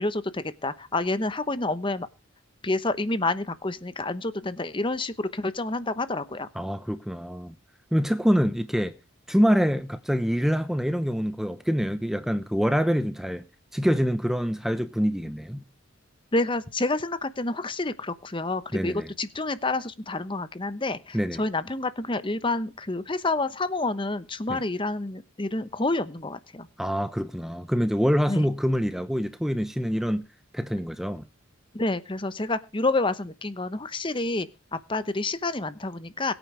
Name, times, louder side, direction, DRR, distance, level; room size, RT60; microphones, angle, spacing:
voice 1, 0.0-2.1 2.6-6.5 16.3-26.7 28.3-28.5 31.7-34.5 34.9-36.3, left 2 dB, 25° left, 0.9 m, -28 dB
voice 2, 6.5-7.5 7.9-8.9 9.3-13.4 13.7-15.6 18.7-19.1 21.1-21.4 24.5-24.6 26.8-30.2 30.5-31.2, equal, ahead, 0.8 m, -25 dB
22.5 x 9.1 x 3.3 m
head